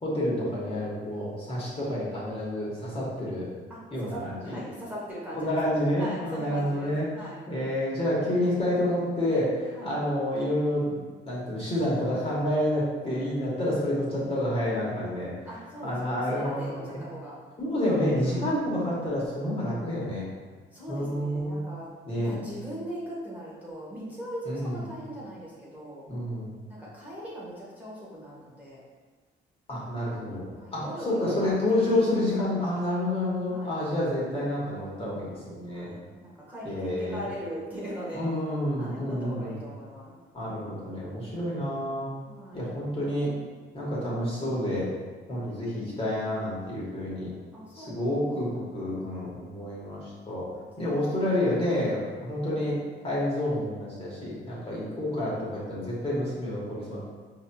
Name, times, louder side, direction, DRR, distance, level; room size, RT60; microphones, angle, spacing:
voice 1, 0.0-3.4 3.9-4.6 5.3-7.0 7.5-11.0 11.2-15.3 15.8-16.9 17.6-20.2 20.9-21.7 22.1-22.3 24.5-24.7 26.1-26.5 29.7-35.9 36.6-37.2 38.1-39.5 40.3-42.1 42.5-43.3 43.7-44.9 45.3-47.3 47.7-50.5 50.8-52.8 53.0-57.0, left 1 dB, 30° left, -7 dB, 1.4 m, -29 dB
voice 2, 3.7-5.6 6.0-7.4 9.7-9.9 15.5-17.4 18.2-18.5 20.7-26.1 26.7-28.8 30.5-32.6 33.5-33.7 35.7-38.2 38.8-40.1 40.4-41.4 42.3-42.7 45.3-45.6 47.5-48.9 50.4-51.2, equal, 10° right, -8 dB, 1.0 m, -40 dB
4.6 x 2.9 x 2.3 m, 1.4 s
cardioid pair, 90°, 20 cm